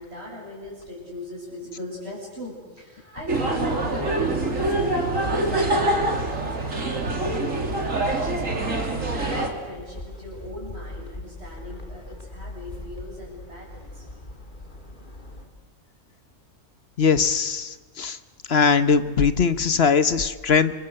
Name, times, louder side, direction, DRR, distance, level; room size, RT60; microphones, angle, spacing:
voice 1, 0.0-7.7 8.2-14.1, left 1 dB, 50° right, -7 dB, 7.0 m, -39 dB
sound 1, 3.3-9.5, right 2 dB, 80° right, 3.3 m, -25 dB
sound 2, 9.7-15.5, left 2 dB, 40° left, 3.1 m, -40 dB
voice 2, 17.0-18.2 18.5-20.7, left 5 dB, 55° left, 12 dB, 1.2 m, -20 dB
28.5 x 24.0 x 7.9 m, 1.4 s
omnidirectional pair, 1.3 m